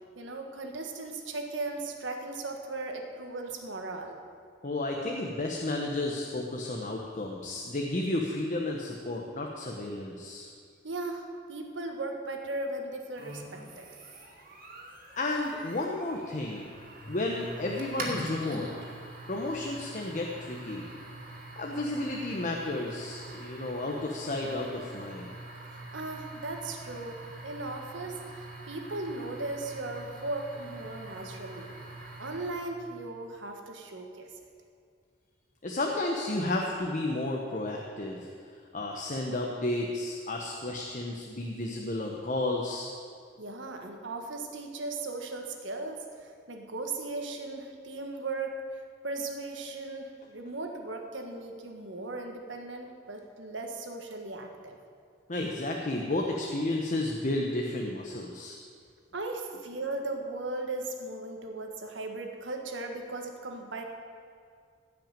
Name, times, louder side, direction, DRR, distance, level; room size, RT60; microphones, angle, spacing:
voice 1, 0.1-4.2 10.8-13.9 25.9-31.7 32.2-34.3 43.4-54.8 59.1-63.8, right 2 dB, 90° right, 3 dB, 1.6 m, -37 dB
voice 2, 4.6-10.5 15.1-16.7 17.1-18.7 19.3-20.9 21.6-25.3 35.6-38.3 38.7-42.9 55.3-58.6, left 2 dB, 45° left, 0 dB, 1.0 m, -32 dB
sound 1, 13.2-32.7, right 2 dB, 50° right, 2.6 m, -44 dB
15.5 x 5.9 x 9.0 m, 2.2 s
head